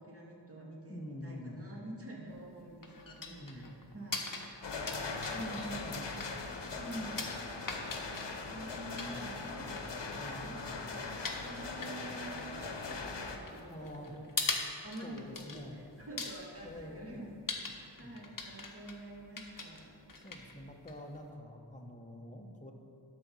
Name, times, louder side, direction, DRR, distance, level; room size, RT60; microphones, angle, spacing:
voice 1, 0.0-4.3 5.3-6.0 6.8-7.3 8.5-14.3 14.8-17.3 17.7-19.9, right 1 dB, 30° right, -4 dB, 2.1 m, -47 dB
voice 2, 0.9-1.6 3.3-3.8 5.4-6.1 7.2-7.4 9.0-9.4 10.2-10.6 13.7-14.2 15.0-15.8 16.6-17.3 18.0-18.2 20.2-22.7, left 1 dB, 15° left, 2 dB, 1.1 m, -47 dB
sound 1, 2.3-21.3, left 3 dB, 50° left, 1.0 m, -43 dB
sound 2, 4.6-13.4, left 3 dB, 80° left, 0.9 m, -40 dB
12.0 x 4.1 x 6.2 m, 2.6 s
wide cardioid pair, 50°, 43 cm